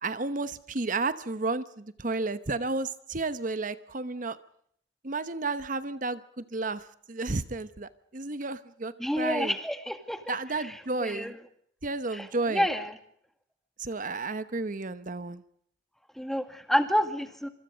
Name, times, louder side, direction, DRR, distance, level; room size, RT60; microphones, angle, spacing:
voice 1, 0.0-4.4 5.0-9.6 10.3-11.3 11.8-12.7 13.8-15.4, right 3 dB, 45° right, 13 dB, 1.0 m, -32 dB
voice 2, 9.0-10.7 11.0-11.3 12.1-12.3 12.5-12.9 16.2-17.5, equal, ahead, 8 dB, 2.0 m, -29 dB
26.5 x 25.0 x 5.1 m, 0.66 s
head